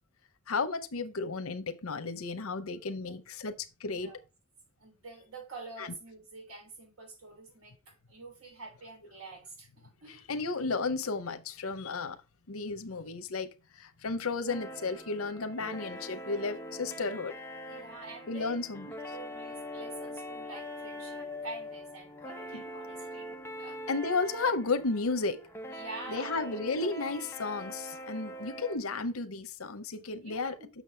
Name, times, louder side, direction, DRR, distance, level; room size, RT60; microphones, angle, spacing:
voice 1, 0.5-4.1 5.8-5.9 10.0-12.2 12.5-17.4 18.3-18.9 22.5-22.6 23.9-25.5 26.1-30.5, left 3 dB, 85° left, 0.8 m, -33 dB
voice 2, 4.8-10.3 17.7-18.6 19.1-23.8 25.7-26.4 26.8-26.9 28.0-28.4 30.2-30.7, right 3 dB, 85° right, 3.3 m, -47 dB
sound 1, 14.5-28.8, equal, 10° left, 0.8 m, -43 dB
7.3 x 6.4 x 3.4 m
head